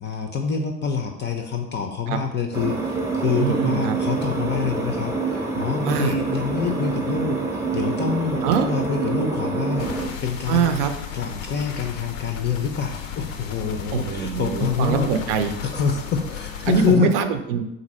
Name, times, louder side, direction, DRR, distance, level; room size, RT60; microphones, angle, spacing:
voice 1, 0.0-10.7 11.1-15.1 15.6-17.1, left 6 dB, 30° left, 4 dB, 0.5 m, -26 dB
sound 1, 2.5-10.1, right 3 dB, 5° right, 0.8 m, -26 dB
voice 2, 3.4-4.0 5.8-6.2 8.4-8.7 10.5-10.9 13.9-15.5 16.7-17.6, right 8 dB, 65° right, 8 dB, 0.6 m, -23 dB
sound 2, 9.8-17.0, left 7 dB, 85° left, 0.6 m, -35 dB
4.0 x 2.6 x 4.1 m, 0.88 s
hypercardioid pair, 75°, 40 cm